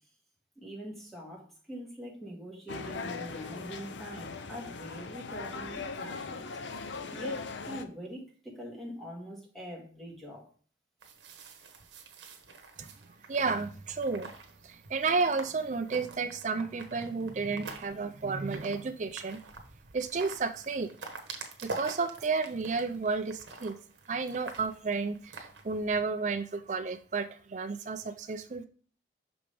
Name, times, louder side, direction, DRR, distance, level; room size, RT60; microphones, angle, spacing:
voice 1, 0.6-6.5 7.1-10.5, equal, ahead, 1.8 m, -43 dB
sound 1, 2.7-7.8, left 4 dB, 75° left, 0.6 m, -39 dB
sound 2, 11.0-26.0, right 3 dB, 80° right, 1.2 m, -46 dB
voice 2, 13.3-14.3 14.6-19.4 19.9-20.9 21.6-23.8 24.1-28.7, right 4 dB, 40° right, 0.4 m, -32 dB
6.0 x 5.1 x 3.4 m
head